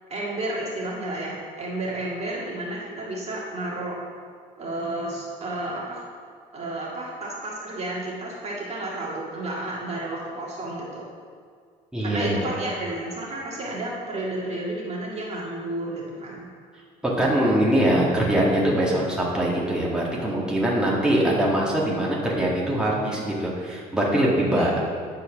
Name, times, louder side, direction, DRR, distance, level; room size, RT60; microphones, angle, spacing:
voice 1, 0.1-4.0 4.6-6.0 6.5-11.0 12.0-16.5 24.5-24.8, right 1 dB, 40° right, -4 dB, 1.9 m, -31 dB
voice 2, 11.9-12.5 17.0-24.8, right 1 dB, 5° right, -5 dB, 1.9 m, -22 dB
9.8 x 4.6 x 6.0 m, 2.1 s
cardioid pair, 110°, 17 cm